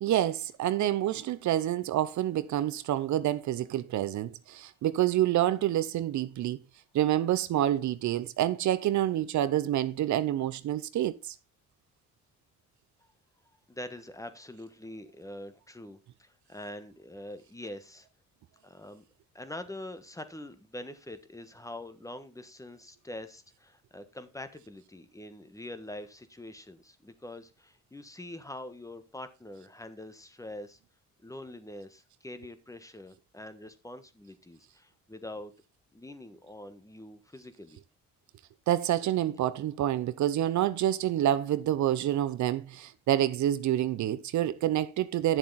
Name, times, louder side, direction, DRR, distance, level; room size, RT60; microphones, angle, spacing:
voice 1, 0.0-6.6 6.9-11.3 38.7-45.4, right 12 dB, 70° right, 0.7 m, -28 dB
voice 2, 13.7-18.1 18.6-19.0 19.3-30.8 31.2-35.5 35.9-37.8, left 1 dB, 10° left, 1.4 m, -44 dB
10.0 x 7.3 x 4.1 m
cardioid pair, 90°, 30 cm